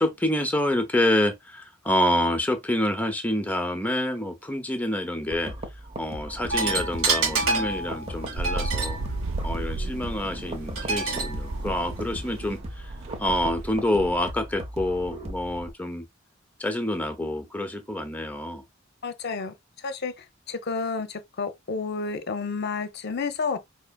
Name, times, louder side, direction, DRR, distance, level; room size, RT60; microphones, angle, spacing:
voice 1, 0.0-5.5 6.0-9.0 9.4-12.9 13.2-16.1 16.6-18.6, left 1 dB, 10° left, 0.6 m, -27 dB
sound 1, 5.3-15.7, right 1 dB, 30° right, 0.7 m, -38 dB
sound 2, 6.5-12.6, right 3 dB, 90° right, 1.4 m, -30 dB
sound 3, 8.4-14.2, right 3 dB, 70° right, 0.4 m, -34 dB
voice 2, 19.0-19.5 19.8-20.1 20.5-23.6, left 4 dB, 55° left, 0.6 m, -30 dB
4.7 x 2.7 x 2.2 m
head